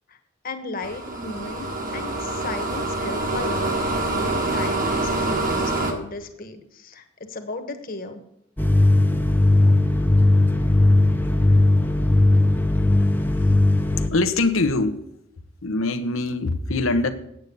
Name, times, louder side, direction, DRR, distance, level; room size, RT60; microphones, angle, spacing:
voice 1, 0.4-1.7 1.9-3.7 4.0-8.2, left 3 dB, 45° left, 6 dB, 1.3 m, -35 dB
sound 1, 0.8-5.9, right 2 dB, 45° right, 1.7 m, -25 dB
sound 2, 8.6-14.1, left 2 dB, 10° left, 0.7 m, -18 dB
voice 2, 14.1-15.0 15.6-17.1, left 2 dB, 85° left, 9 dB, 1.0 m, -22 dB
9.0 x 8.0 x 6.9 m, 0.78 s
head